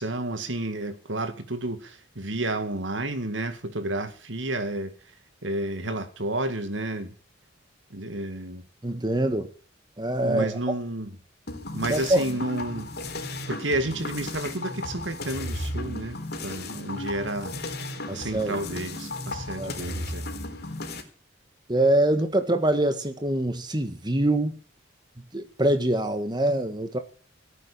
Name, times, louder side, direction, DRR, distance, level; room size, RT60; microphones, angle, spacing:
voice 1, 0.0-4.9 5.4-7.1 7.9-8.6 10.2-11.1 11.7-12.9 13.5-17.5 18.1-20.3, right 1 dB, 75° right, 2.2 m, -31 dB
voice 2, 8.8-9.5 10.0-10.6 11.9-12.2 18.1-18.6 19.6-19.9 21.7-24.6 25.3-27.0, right 1 dB, 25° right, 1.8 m, -24 dB
sound 1, 11.5-21.0, left 2 dB, 60° left, 4.0 m, -35 dB
17.5 x 9.3 x 8.8 m
head